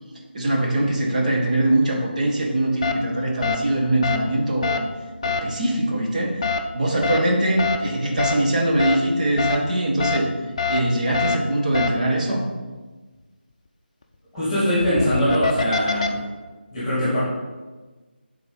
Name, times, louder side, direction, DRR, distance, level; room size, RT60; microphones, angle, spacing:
voice 1, 0.3-4.8 5.2-12.5, right 1 dB, 40° right, -1 dB, 1.5 m, -22 dB
sound 1, 2.8-2.9 3.4-3.6 4.0-4.2 4.6-4.8 5.2-5.4 6.4-6.6 7.0-7.2 7.6-7.8 8.2-8.3 8.8-8.9 9.4-9.6 10.0-10.2 10.6-10.8 11.1-11.3 11.7-11.9 14.7-16.1, left 5 dB, 30° left, 0.5 m, -24 dB
voice 2, 14.3-16.2 16.7-17.2, equal, 5° left, -11 dB, 2.5 m, -22 dB
7.9 x 4.1 x 5.6 m, 1.3 s
figure-of-eight pair, 165°, 6 cm